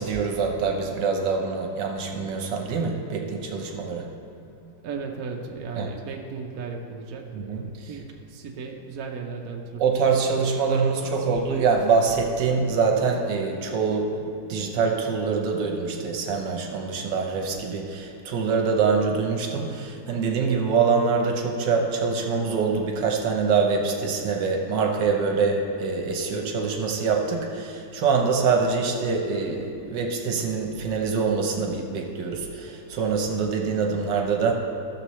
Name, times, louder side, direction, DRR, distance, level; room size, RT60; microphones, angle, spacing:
voice 1, 0.0-4.1 5.8-5.9 7.3-7.9 9.8-34.5, right 5 dB, 80° right, 2 dB, 1.6 m, -25 dB
voice 2, 4.6-9.8 10.3-10.4 11.0-11.1, right 4 dB, 65° right, 2 dB, 1.2 m, -36 dB
15.0 x 6.8 x 3.2 m, 2.7 s
omnidirectional pair, 1.9 m